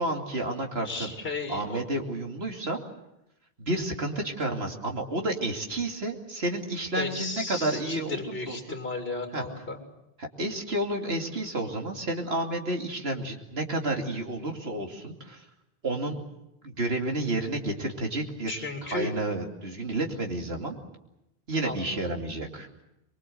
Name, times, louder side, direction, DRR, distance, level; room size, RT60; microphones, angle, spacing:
voice 1, 0.0-1.1 1.5-2.8 3.6-8.8 9.3-9.4 10.2-15.4 15.8-16.2 16.6-20.8 21.5-22.7, right 2 dB, 80° right, 2 dB, 3.0 m, -31 dB
voice 2, 0.8-1.8 6.9-9.8 18.5-19.1 21.6-22.0, left 3 dB, 70° left, 3 dB, 2.9 m, -34 dB
24.5 x 22.5 x 7.8 m, 0.88 s
omnidirectional pair, 1.0 m